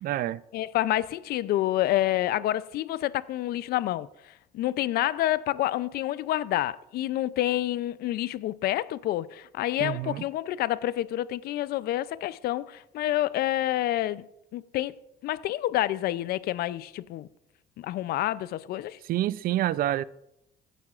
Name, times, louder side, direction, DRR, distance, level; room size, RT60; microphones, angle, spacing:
voice 1, 0.0-0.4 9.8-10.2 19.0-20.0, right 13 dB, 60° right, 0.4 m, -27 dB
voice 2, 0.5-4.1 4.5-14.3 14.5-15.0 15.2-17.3 17.8-19.0, left 14 dB, 70° left, 0.4 m, -28 dB
15.5 x 9.1 x 2.4 m
cardioid pair, 110°, 17 cm